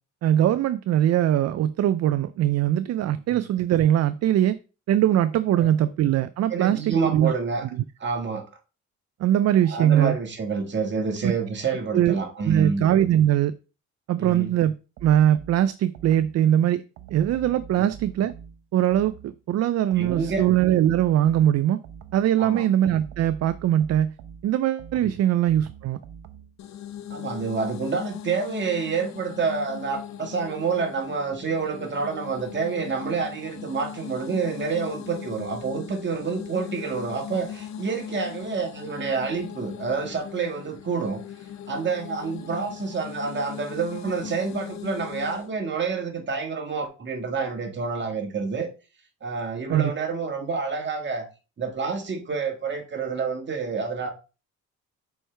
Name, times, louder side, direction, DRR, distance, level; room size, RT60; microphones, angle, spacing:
voice 1, 0.2-4.6 4.9-7.3 7.6-7.7 9.2-10.1 11.2-11.3 11.9-12.2 12.5-13.5 14.1-14.7 15.0-16.8 17.1-18.3 18.7-21.8 22.1-24.1 24.4-26.0 49.7-49.9, right 11 dB, 55° right, 0.4 m, -21 dB
voice 2, 6.5-7.6 8.0-8.5 9.7-12.8 14.2-14.5 17.8-17.9 20.0-20.5 22.4-22.6 25.0-25.1 27.1-41.2 41.7-48.7 49.2-51.3 51.6-54.1, right 5 dB, 40° right, 1.7 m, -28 dB
sound 1, 15.0-16.5 17.0-19.4 19.9-22.4 22.8-26.6, right 8 dB, 75° right, 0.8 m, -44 dB
sound 2, 26.6-45.5, left 10 dB, 65° left, 0.8 m, -39 dB
6.2 x 4.5 x 3.4 m
cardioid pair, 90°, 30 cm